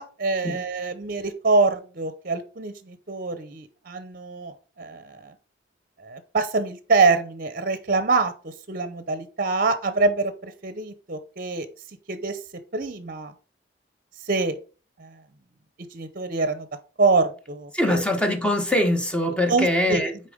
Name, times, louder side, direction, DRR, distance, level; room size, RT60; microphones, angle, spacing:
voice 1, 0.0-5.3 6.0-11.7 12.1-12.4 12.7-13.3 14.3-14.6 15.0-15.2 15.9-16.7 17.0-18.0 19.5-20.0, right 3 dB, 45° right, 0.7 m, -25 dB
voice 2, 17.7-20.1, left 1 dB, 5° left, 1.0 m, -23 dB
6.8 x 4.4 x 5.0 m
head